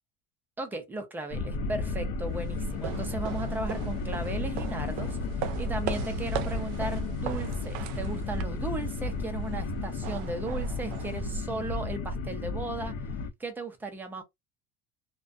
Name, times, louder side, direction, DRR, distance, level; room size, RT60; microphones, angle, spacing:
voice 1, 0.6-5.2 5.6-12.9 13.4-14.2, right 2 dB, 5° right, 0.3 m, -36 dB
sound 1, 1.3-13.3, left 3 dB, 65° left, 0.6 m, -33 dB
sound 2, 2.2-11.8, right 8 dB, 70° right, 0.5 m, -39 dB
2.5 x 2.1 x 2.4 m
cardioid pair, 160°, 30 cm